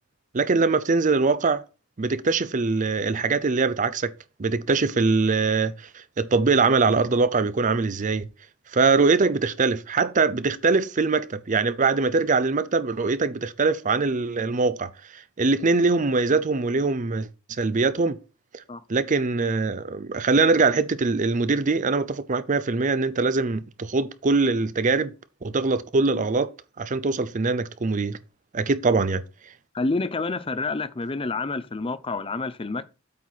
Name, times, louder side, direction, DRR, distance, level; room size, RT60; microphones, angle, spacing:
voice 1, 0.3-1.6 2.0-4.1 4.4-8.3 8.7-17.3 17.6-18.2 18.9-25.1 25.4-26.5 26.8-28.2 28.5-29.2, right 4 dB, 35° right, 0.5 m, -22 dB
voice 2, 29.7-32.9, left 3 dB, 25° left, 0.5 m, -28 dB
8.4 x 4.6 x 4.1 m
head